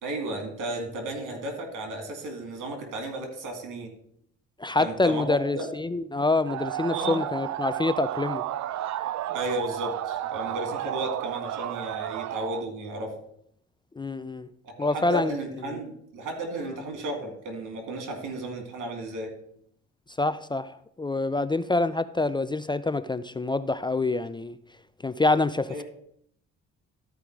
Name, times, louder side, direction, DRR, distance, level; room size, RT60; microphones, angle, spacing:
voice 1, 0.0-3.9 4.8-5.7 6.9-7.2 9.3-13.1 14.6-19.3 25.7-25.8, right 1 dB, 85° right, 2.5 m, -34 dB
voice 2, 4.6-8.4 14.0-14.5 14.8-15.3 15.7-15.8 20.2-20.7 21.0-24.6 25.0-25.8, left 2 dB, 15° left, 0.3 m, -26 dB
sound 1, 6.5-12.7, right 12 dB, 65° right, 0.5 m, -32 dB
13.0 x 4.9 x 4.6 m
cardioid pair, 90°, 30 cm